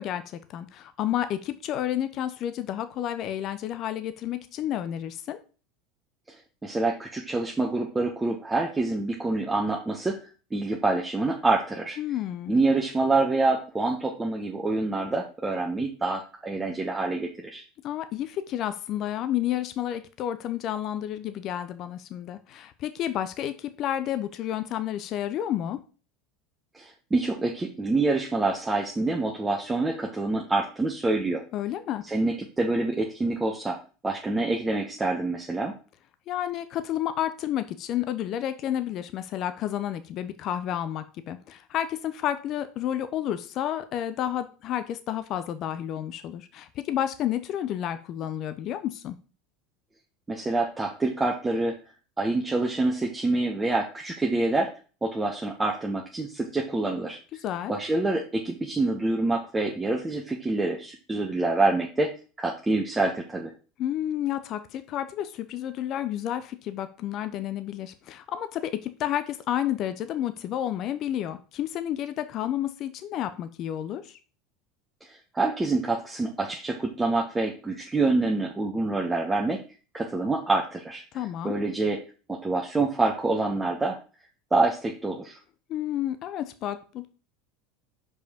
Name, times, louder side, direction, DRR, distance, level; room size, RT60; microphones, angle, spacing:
voice 1, 0.0-5.4 12.0-12.5 17.8-25.8 31.5-32.0 36.3-49.2 57.4-57.7 63.8-74.2 81.1-81.6 85.7-87.1, left 11 dB, 50° left, 11 dB, 0.7 m, -31 dB
voice 2, 6.3-10.2 10.5-12.0 12.5-17.6 26.7-31.4 32.1-33.8 34.0-35.7 50.3-51.7 52.2-54.7 55.0-57.2 57.7-62.1 62.4-63.5 75.3-79.6 79.9-81.0 81.4-82.0 82.3-84.0 84.5-85.4, right 2 dB, 15° right, 0 dB, 1.2 m, -26 dB
5.2 x 4.9 x 5.2 m, 0.36 s
hypercardioid pair, 85°, 0 cm